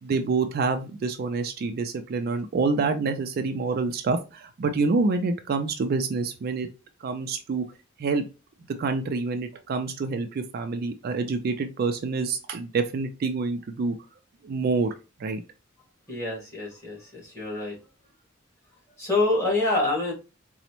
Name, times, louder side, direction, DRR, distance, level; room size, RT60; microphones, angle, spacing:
voice 1, 0.0-6.7 7.0-7.6 8.0-8.2 8.8-14.0 14.4-14.9 15.2-15.4, right 4 dB, 50° right, 7 dB, 0.3 m, -27 dB
voice 2, 16.1-17.8 19.0-20.1, left 2 dB, 15° left, -4 dB, 1.4 m, -26 dB
4.0 x 2.0 x 2.9 m, 0.31 s
head